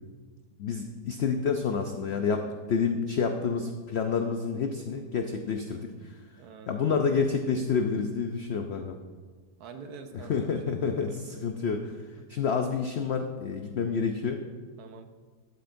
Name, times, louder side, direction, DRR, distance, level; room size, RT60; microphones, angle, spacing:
voice 1, 0.6-6.2 6.7-9.0 10.1-12.0 12.3-14.4, left 5 dB, 75° left, 5 dB, 0.6 m, -29 dB
voice 2, 6.4-7.0 9.6-11.4 12.2-12.3 14.8-15.1, right 5 dB, 75° right, 7 dB, 1.2 m, -47 dB
11.5 x 8.5 x 2.6 m, 1.5 s
omnidirectional pair, 1.7 m